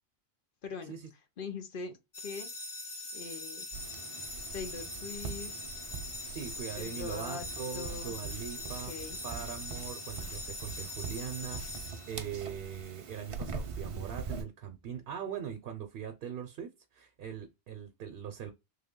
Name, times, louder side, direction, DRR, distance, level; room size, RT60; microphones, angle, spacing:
voice 1, 0.6-0.9 1.4-2.5 3.1-3.7 4.5-5.7 6.8-7.5 7.7-8.1 8.9-9.2, left 5 dB, 60° left, 1.0 m, -42 dB
sound 1, 2.1-12.6, left 2 dB, 40° left, 0.5 m, -42 dB
sound 2, 3.7-14.4, right 5 dB, 45° right, 0.5 m, -43 dB
voice 2, 6.3-8.9 9.2-18.5, right 8 dB, 65° right, 0.8 m, -41 dB
3.3 x 2.1 x 3.6 m
omnidirectional pair, 1.1 m